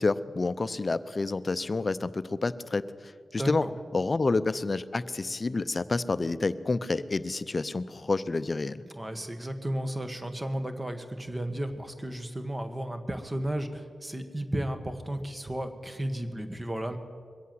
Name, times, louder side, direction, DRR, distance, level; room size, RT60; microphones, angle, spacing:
voice 1, 0.0-3.7 3.9-8.8, left 3 dB, 40° left, 15 dB, 0.6 m, -29 dB
voice 2, 3.4-3.7 8.9-17.0, right 1 dB, 20° right, 8 dB, 1.7 m, -33 dB
22.0 x 8.3 x 7.9 m, 2.1 s
cardioid pair, 50°, 0 cm